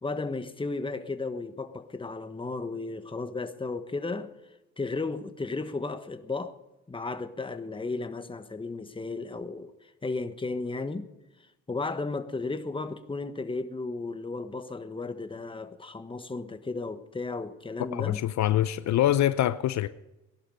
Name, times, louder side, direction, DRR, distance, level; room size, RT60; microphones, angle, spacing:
voice 1, 0.0-4.3 4.8-6.6 6.9-9.7 10.0-11.1 11.7-18.2, left 3 dB, 15° left, 1.2 m, -34 dB
voice 2, 17.9-19.9, left 12 dB, 65° left, 0.6 m, -25 dB
18.0 x 11.5 x 5.4 m
cardioid pair, 90°, 30 cm